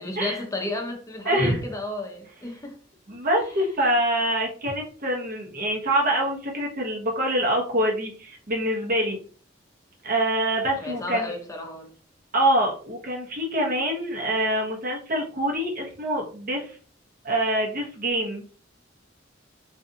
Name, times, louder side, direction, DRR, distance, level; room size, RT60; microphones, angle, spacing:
voice 1, 0.0-2.8 3.8-3.9 10.8-11.9, left 2 dB, 15° left, 0.6 m, -33 dB
voice 2, 1.2-1.6 3.1-9.2 10.0-11.3 12.3-16.8 17.2-18.4, right 1 dB, 45° right, 1.0 m, -25 dB
3.8 x 2.6 x 2.6 m
head